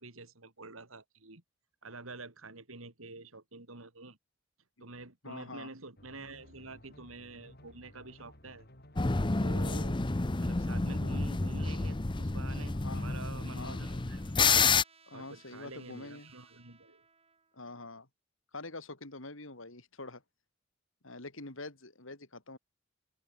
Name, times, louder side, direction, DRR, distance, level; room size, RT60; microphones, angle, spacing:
voice 1, 0.0-1.4 1.8-4.2 4.8-8.7 9.4-10.0 10.4-14.3 15.1-17.0, right 3 dB, 80° right, 3.6 m, -48 dB
voice 2, 5.2-5.7 12.7-13.2 13.6-13.9 15.1-16.3 17.5-18.1 18.5-20.2 21.0-22.6, left 2 dB, 70° left, 3.7 m, -45 dB
sound 1, 6.0-10.2, left 1 dB, 50° left, 7.1 m, -56 dB
sound 2, 9.0-14.8, left 4 dB, 25° left, 0.7 m, -29 dB
Trumpet, 12.5-17.7, right 5 dB, 30° right, 6.5 m, -64 dB
open air
head